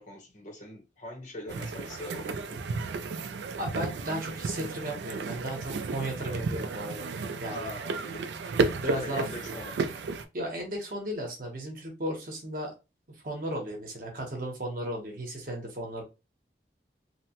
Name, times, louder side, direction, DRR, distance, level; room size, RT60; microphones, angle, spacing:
voice 1, 0.0-2.6 7.5-9.8, left 1 dB, 40° left, 0 dB, 0.9 m, -42 dB
sound 1, 1.5-10.3, right 4 dB, 80° right, 0.4 m, -33 dB
voice 2, 3.6-7.1 7.4-7.7 8.7-9.3 10.3-12.7 13.1-16.0, right 1 dB, 50° right, 1 dB, 0.9 m, -35 dB
2.8 x 2.1 x 2.8 m, 0.28 s
head